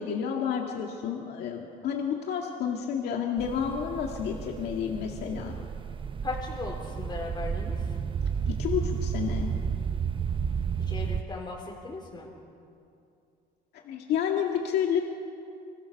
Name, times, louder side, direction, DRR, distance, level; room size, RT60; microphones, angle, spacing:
voice 1, 0.0-5.5 8.5-9.5 13.8-15.0, left 8 dB, 75° left, 1 dB, 2.1 m, -30 dB
sound 1, 3.4-11.2, right 6 dB, 30° right, 0.8 m, -32 dB
voice 2, 6.2-8.0 10.8-12.3, left 3 dB, 25° left, -3 dB, 3.8 m, -37 dB
25.5 x 24.0 x 6.6 m, 2.6 s
cardioid pair, 110°, 17 cm